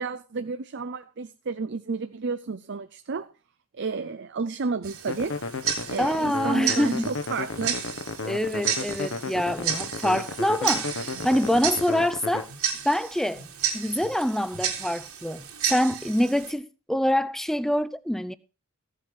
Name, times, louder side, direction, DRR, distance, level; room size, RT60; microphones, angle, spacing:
voice 1, 0.0-3.3 3.7-5.4 5.9-7.8, right 4 dB, 55° right, 0.6 m, -31 dB
Tick-tock, 4.8-16.5, right 8 dB, 75° right, 2.8 m, -32 dB
sound 1, 5.1-12.4, left 3 dB, 60° left, 1.1 m, -34 dB
voice 2, 6.0-7.1 8.2-12.5 12.8-13.4 13.7-18.3, equal, ahead, 0.5 m, -25 dB
15.5 x 7.4 x 4.8 m
head